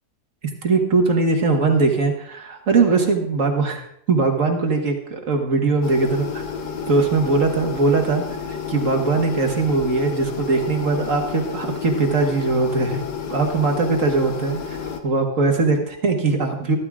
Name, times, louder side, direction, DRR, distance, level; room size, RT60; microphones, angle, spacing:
voice 1, 0.6-3.8 4.1-6.4 6.9-13.0 13.3-14.8 15.0-16.8, right 3 dB, 55° right, 3 dB, 1.8 m, -20 dB
sound 1, 5.8-15.0, left 6 dB, 85° left, 1.6 m, -31 dB
14.0 x 13.0 x 2.4 m, 0.71 s
omnidirectional pair, 1.7 m